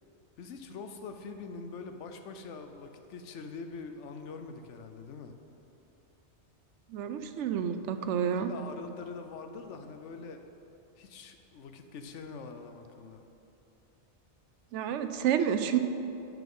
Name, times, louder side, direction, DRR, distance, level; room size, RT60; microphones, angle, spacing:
voice 1, 0.4-5.3 8.0-10.4 11.0-13.2, left 4 dB, 90° left, 6 dB, 1.0 m, -44 dB
voice 2, 6.9-8.5 14.7-15.8, right 9 dB, 85° right, 9 dB, 0.9 m, -29 dB
9.1 x 5.9 x 5.4 m, 2.9 s
omnidirectional pair, 1.2 m